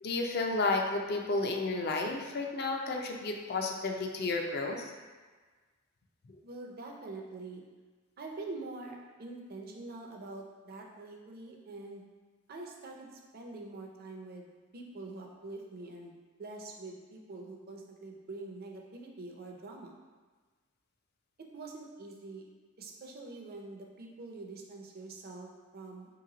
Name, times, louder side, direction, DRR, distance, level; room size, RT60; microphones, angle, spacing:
voice 1, 0.0-4.9, left 3 dB, 50° left, 2 dB, 0.4 m, -32 dB
voice 2, 6.4-7.6 8.2-12.0 12.5-14.5 14.7-16.1 16.4-19.9 21.5-22.4 22.8-26.1, right 2 dB, 50° right, 0 dB, 0.5 m, -45 dB
3.1 x 2.9 x 3.8 m, 1.4 s
head